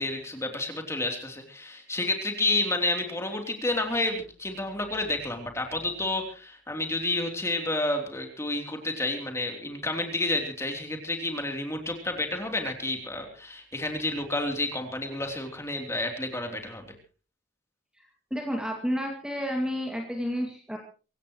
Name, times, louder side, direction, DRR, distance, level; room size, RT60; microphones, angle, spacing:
voice 1, 0.0-16.8, left 2 dB, 15° left, 3 dB, 3.3 m, -30 dB
voice 2, 18.3-20.8, equal, 5° right, 1 dB, 2.3 m, -30 dB
24.5 x 16.5 x 3.1 m, 0.37 s
head